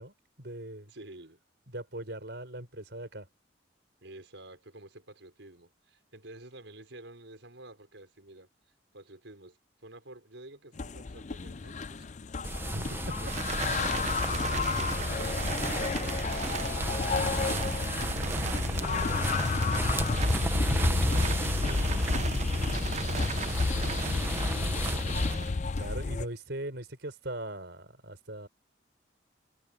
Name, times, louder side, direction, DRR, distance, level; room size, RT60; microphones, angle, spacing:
voice 1, 0.0-0.9 1.7-3.3 12.7-13.2 25.8-28.5, right 1 dB, 65° right, 5.5 m, -39 dB
voice 2, 0.8-1.4 4.0-8.5 8.9-12.1 13.2-13.3 14.0-17.7 18.1-19.8 20.5-25.5, right 1 dB, 80° right, 5.0 m, -50 dB
sound 1, 10.8-26.3, left 4 dB, 40° left, 0.5 m, -31 dB
sound 2, 12.4-25.3, right 1 dB, 10° right, 1.1 m, -34 dB
sound 3, 13.3-26.1, right 4 dB, 35° right, 0.6 m, -37 dB
head